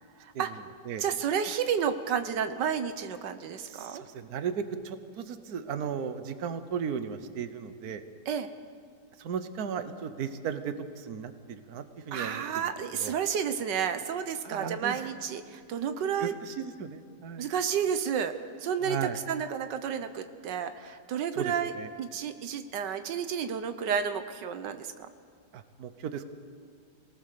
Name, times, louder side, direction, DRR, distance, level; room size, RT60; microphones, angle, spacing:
voice 1, 1.0-4.0 8.3-8.5 12.1-16.3 17.4-21.7 22.0-24.9, right 7 dB, 90° right, 9 dB, 1.6 m, -31 dB
voice 2, 3.7-8.0 9.2-13.1 14.4-15.1 16.2-17.5 18.8-19.2 21.3-21.9 25.5-26.3, right 7 dB, 65° right, 10 dB, 1.5 m, -36 dB
26.0 x 18.5 x 6.7 m, 2.1 s
omnidirectional pair, 1.8 m